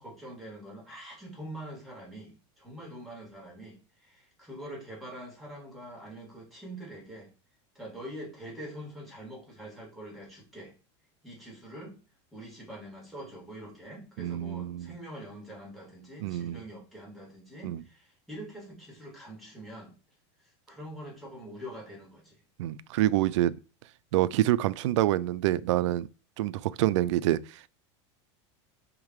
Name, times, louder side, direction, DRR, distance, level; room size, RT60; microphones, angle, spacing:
voice 1, 0.0-7.3 7.7-10.7 11.2-12.0 12.3-19.9 20.7-22.4, right 1 dB, ahead, 2.8 m, -44 dB
voice 2, 14.2-14.9 16.2-16.6 17.6-17.8 22.6-23.5 24.1-26.1 26.4-27.7, right 14 dB, 85° right, 0.4 m, -27 dB
5.5 x 3.6 x 4.7 m
supercardioid pair, 140°, 15 cm